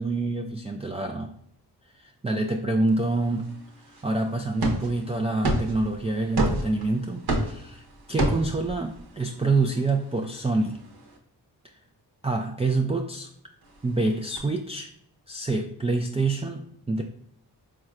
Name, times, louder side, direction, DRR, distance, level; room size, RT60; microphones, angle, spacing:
voice 1, 0.0-1.3 1.9-3.5 4.0-7.8 8.1-10.8 12.2-13.3 13.8-14.9 15.3-17.0, right 3 dB, 15° right, 2 dB, 0.3 m, -26 dB
sound 1, 2.9-11.2 13.6-14.4, right 1 dB, 60° right, 1.0 m, -32 dB
4.5 x 3.1 x 2.4 m, 0.70 s
cardioid pair, 55°, 43 cm